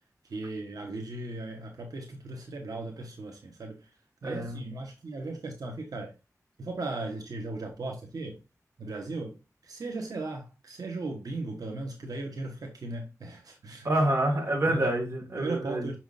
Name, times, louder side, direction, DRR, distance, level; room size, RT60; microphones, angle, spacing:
voice 1, 0.2-3.9 4.2-6.1 6.6-8.4 8.8-13.9 14.7-14.9 15.4-16.0, right 2 dB, 90° right, 1.2 m, -37 dB
voice 2, 4.2-4.6 13.8-15.9, right 1 dB, 50° right, 2.2 m, -27 dB
6.3 x 5.8 x 2.6 m
wide cardioid pair, 105°, 6 cm